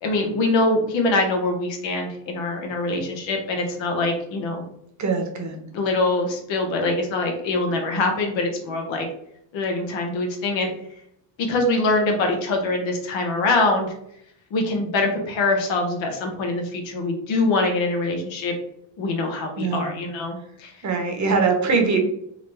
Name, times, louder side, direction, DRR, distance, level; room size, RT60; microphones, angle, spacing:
voice 1, 0.0-4.6 5.7-9.1 9.5-10.7 11.4-13.9 14.5-18.5 19.0-20.7, left 2 dB, 85° left, 3 dB, 1.0 m, -24 dB
voice 2, 5.0-5.6 19.6-19.9 20.8-22.0, right 4 dB, 40° right, 3 dB, 1.0 m, -22 dB
3.8 x 2.2 x 3.2 m, 0.71 s
cardioid pair, 90°, 44 cm